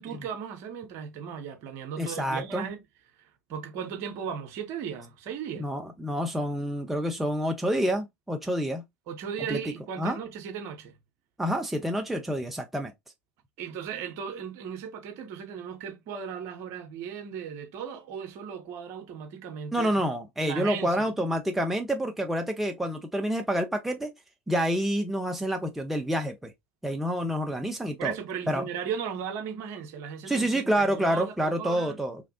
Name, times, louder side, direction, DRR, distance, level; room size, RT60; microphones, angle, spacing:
voice 1, 0.0-2.8 3.2-5.7 9.1-11.0 13.6-19.9 20.4-21.0 28.0-32.0, right 7 dB, 45° right, 0.8 m, -36 dB
voice 2, 2.0-2.6 5.6-8.8 9.5-9.6 10.0-10.2 11.4-12.9 19.7-24.1 24.5-26.5 26.8-28.1 28.5-28.6 30.3-32.2, equal, 5° right, 0.5 m, -28 dB
3.0 x 2.4 x 2.6 m
figure-of-eight pair, 80°, 7 cm